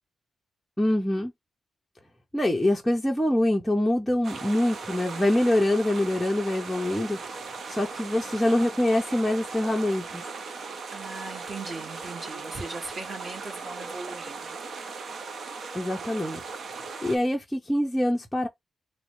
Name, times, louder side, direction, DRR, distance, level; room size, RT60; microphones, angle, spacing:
voice 1, 0.8-1.3 2.3-7.2 7.7-10.2 15.7-16.4 17.0-18.5, left 1 dB, 5° left, 0.6 m, -24 dB
sound 1, 4.2-17.2, right 4 dB, 55° right, 0.6 m, -38 dB
voice 2, 10.9-14.4, right 3 dB, 35° right, 1.3 m, -38 dB
4.0 x 2.1 x 3.0 m
wide cardioid pair, 160°, 0 cm